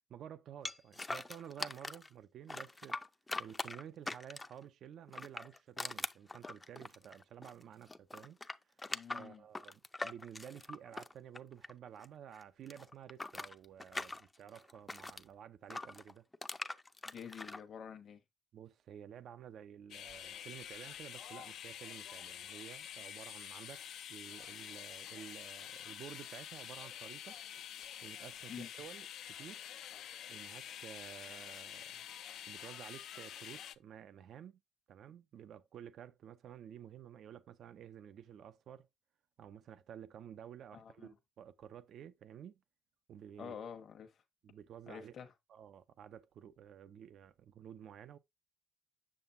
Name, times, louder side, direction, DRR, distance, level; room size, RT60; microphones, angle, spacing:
voice 1, 0.1-3.0 3.4-8.4 9.1-16.3 18.5-27.4 28.0-29.6 30.3-32.1 32.5-34.6 34.9-38.9 39.4-42.6 43.1-43.6 44.4-45.1 45.5-48.2, right 9 dB, 70° right, 0.6 m, -52 dB
sound 1, 0.7-2.1 2.5-4.6 5.1-7.6 7.9-12.1 12.3-15.2 15.7-17.6, left 2 dB, 20° left, 0.5 m, -42 dB
voice 2, 8.9-9.4 17.0-18.2 28.5-28.7 40.7-41.1 43.4-44.1 44.9-45.3, left 7 dB, 55° left, 1.1 m, -48 dB
sound 2, 19.9-33.8, left 10 dB, 75° left, 0.5 m, -48 dB
7.5 x 6.7 x 2.6 m
cardioid pair, 90°, 0 cm